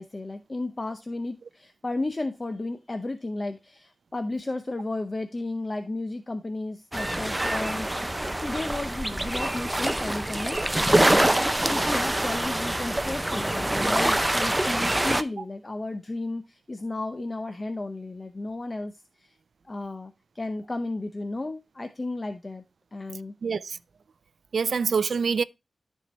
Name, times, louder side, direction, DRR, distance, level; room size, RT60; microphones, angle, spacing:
voice 1, 0.0-11.4 11.7-18.9 19.2-19.4 19.7-22.6 22.9-23.3, left 2 dB, 30° left, 0.7 m, -33 dB
sound 1, 6.9-15.2, right 1 dB, 15° right, 0.6 m, -25 dB
voice 2, 23.4-23.8 24.5-25.4, right 5 dB, 80° right, 0.4 m, -25 dB
13.0 x 4.5 x 3.1 m
wide cardioid pair, 90°, 0 cm